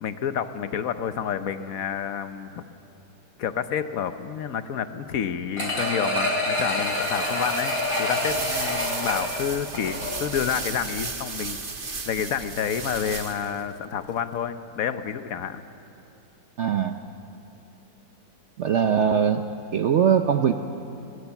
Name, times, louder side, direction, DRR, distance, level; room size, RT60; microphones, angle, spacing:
voice 1, 0.0-2.6 3.4-7.7 8.0-11.6 12.1-15.6, left 8 dB, 55° left, 11 dB, 1.1 m, -29 dB
sound 1, 5.6-10.4 10.8-10.9, left 1 dB, 15° left, 3.9 m, -27 dB
sound 2, 6.7-13.6, right 4 dB, 30° right, 1.3 m, -35 dB
voice 2, 16.6-17.0 18.6-19.4 19.7-20.5, right 7 dB, 80° right, 7 dB, 0.6 m, -21 dB
21.5 x 20.5 x 7.1 m, 2.7 s
omnidirectional pair, 2.1 m